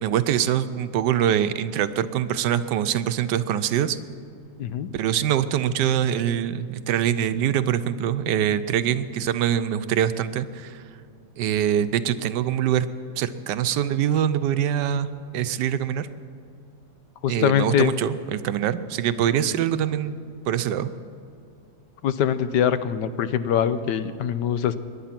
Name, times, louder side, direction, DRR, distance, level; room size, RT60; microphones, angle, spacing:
voice 1, 0.0-4.0 4.9-10.8 11.4-12.9 13.2-15.1 15.3-16.1 17.3-20.2 20.5-20.9, right 10 dB, 80° right, 12 dB, 1.3 m, -24 dB
voice 2, 4.6-4.9 17.2-17.9 22.0-24.7, left 9 dB, 80° left, 13 dB, 1.3 m, -23 dB
22.0 x 10.5 x 5.9 m, 2.5 s
omnidirectional pair, 1.8 m